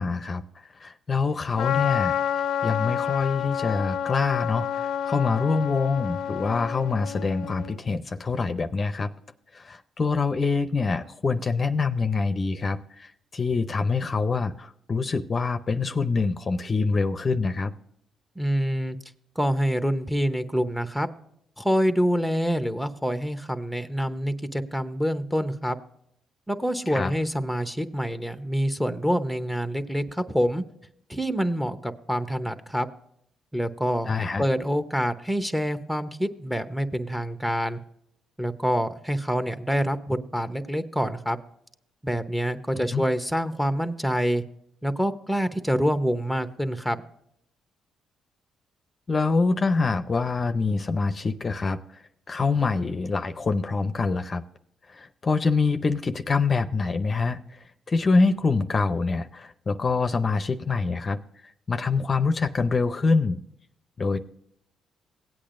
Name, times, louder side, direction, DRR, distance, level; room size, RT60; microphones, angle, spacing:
voice 1, 0.0-2.1 2.6-9.1 9.5-17.7 26.9-27.1 34.1-34.4 42.9-43.0 49.1-52.0 52.3-54.4 54.9-63.4 64.0-64.2, left 4 dB, 35° left, 9 dB, 0.6 m, -25 dB
Trumpet, 1.6-7.8, left 9 dB, 80° left, 0.5 m, -29 dB
voice 2, 18.4-19.0 19.4-21.1 21.6-25.8 26.5-30.6 31.1-32.9 33.5-34.1 34.4-37.8 38.4-41.4 42.0-44.4 44.8-47.0, equal, 5° right, 9 dB, 0.8 m, -26 dB
17.0 x 8.5 x 2.5 m, 0.72 s
cardioid pair, 90°, 0 cm